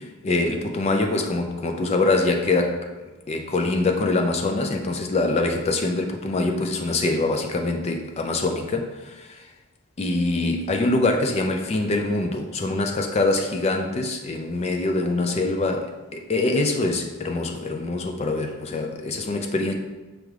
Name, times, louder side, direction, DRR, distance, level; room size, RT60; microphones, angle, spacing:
voice 1, 0.0-2.9 3.3-9.4 10.0-19.7, left 2 dB, 30° left, 4 dB, 0.3 m, -24 dB
6.1 x 2.4 x 3.2 m, 1.2 s
head